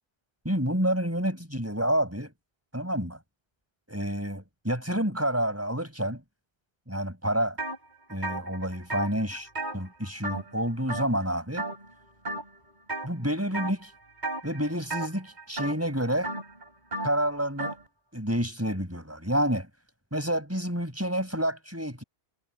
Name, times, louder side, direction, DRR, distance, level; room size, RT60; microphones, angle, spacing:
voice 1, 0.4-2.3 2.7-3.2 3.9-6.2 6.9-7.6 8.1-9.5 9.7-11.7 13.0-13.9 14.4-16.3 17.0-17.8 18.1-19.7 20.1-22.0, equal, 15° right, 7.5 m, -29 dB
sound 1, 7.6-7.8 8.1-10.6 10.9-11.3 11.6-11.9 12.2-13.1 13.5-13.9 14.2-17.8, right 2 dB, 45° right, 4.0 m, -34 dB
omnidirectional pair, 1.1 m